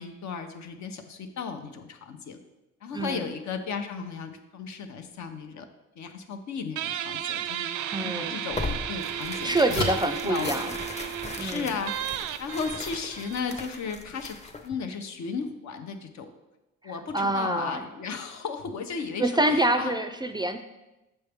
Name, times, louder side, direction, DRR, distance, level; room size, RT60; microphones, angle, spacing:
voice 1, 0.0-2.4 2.8-5.7 6.0-7.7 8.0-9.8 10.2-16.3 16.8-20.0, left 5 dB, 65° left, 7 dB, 0.8 m, -35 dB
voice 2, 2.9-3.3 7.9-8.4 9.4-10.7 11.4-11.7 16.8-17.8 19.2-20.6, right 1 dB, 15° right, 7 dB, 0.3 m, -26 dB
Guitar, 6.8-13.9, right 11 dB, 80° right, 0.5 m, -34 dB
sound 1, 7.5-7.7 8.2-11.3, left 1 dB, 85° left, 1.4 m, -36 dB
Tearing, 8.5-14.7, left 2 dB, 20° left, 0.7 m, -38 dB
6.9 x 5.5 x 3.5 m, 0.98 s
cardioid pair, 90°, 30 cm